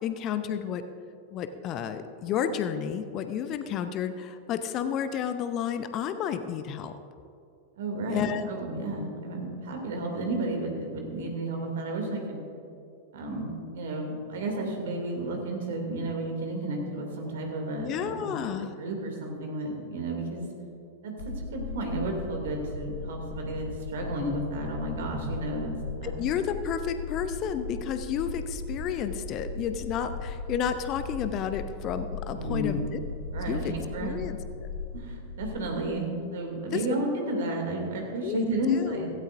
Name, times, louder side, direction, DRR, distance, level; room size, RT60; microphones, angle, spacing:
voice 1, 0.0-0.8 1.3-6.9 8.1-8.5 17.8-18.7 26.0-33.0 33.5-33.7 34.0-34.7 36.7-36.8 38.2-38.4 38.7-39.1, left 8 dB, 35° left, 10 dB, 0.7 m, -31 dB
voice 2, 7.8-8.2 8.5-12.5 13.1-20.5 21.0-25.7 26.0-26.1 32.3-32.8 33.3-34.1 34.9-39.1, right 1 dB, 60° right, 2 dB, 2.7 m, -32 dB
sound 1, 21.2-35.7, left 3 dB, 65° left, 2.3 m, -38 dB
16.5 x 16.5 x 2.6 m, 2.5 s
figure-of-eight pair, 90°, 0 cm